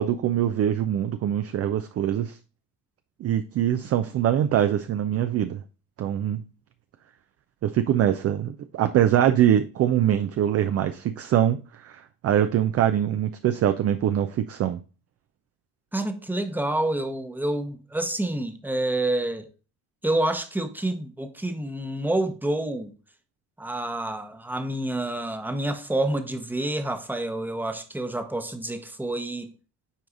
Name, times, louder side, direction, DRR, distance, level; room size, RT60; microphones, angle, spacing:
voice 1, 0.0-2.4 3.2-5.6 6.0-6.4 7.6-11.6 11.8-14.8, right 10 dB, 35° right, 0.4 m, -23 dB
voice 2, 15.9-19.5 20.0-22.9 23.6-29.5, right 1 dB, 5° right, 0.8 m, -28 dB
8.1 x 4.6 x 2.5 m
hypercardioid pair, 50°, 48 cm